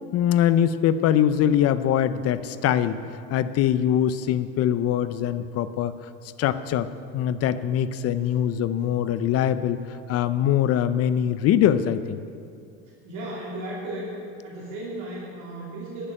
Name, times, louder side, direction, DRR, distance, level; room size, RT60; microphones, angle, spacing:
voice 1, 0.1-3.0 3.3-5.9 6.4-6.9 7.1-9.8 10.1-12.2, left 10 dB, 45° left, 13 dB, 0.6 m, -22 dB
voice 2, 13.0-14.2 14.4-16.1, right 1 dB, 60° right, -6 dB, 3.0 m, -35 dB
12.0 x 6.9 x 8.8 m, 2.5 s
supercardioid pair, 125°, 34 cm